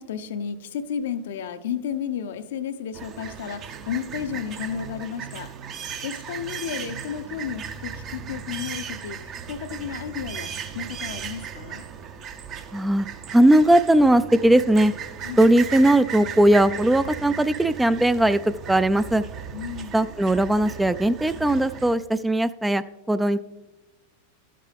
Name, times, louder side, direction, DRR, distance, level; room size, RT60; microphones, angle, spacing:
voice 1, 0.0-5.5 6.0-11.8 15.2-15.4 19.5-20.0, left 8 dB, 70° left, 10 dB, 0.6 m, -32 dB
sound 1, 2.9-22.0, right 7 dB, 40° right, 0.7 m, -36 dB
voice 2, 12.7-14.9 15.4-19.2 19.9-23.4, right 1 dB, 5° right, 13 dB, 0.3 m, -19 dB
13.0 x 7.5 x 3.4 m, 1.1 s
hypercardioid pair, 95°, 0 cm